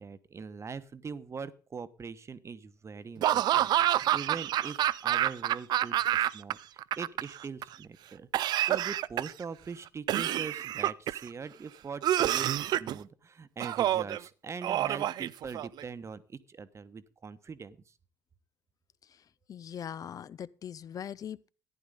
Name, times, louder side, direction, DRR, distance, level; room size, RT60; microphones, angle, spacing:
voice 1, 0.0-17.8, right 5 dB, 30° right, 1.1 m, -42 dB
Laughter / Cough, 3.2-6.5 6.8-7.6 8.3-9.4 10.1-11.3 12.0-13.0 13.6-14.2 14.6-15.8, right 12 dB, 50° right, 0.5 m, -28 dB
voice 2, 19.5-21.5, left 9 dB, 40° left, 0.6 m, -41 dB
14.5 x 11.0 x 4.0 m
figure-of-eight pair, 50°, 9 cm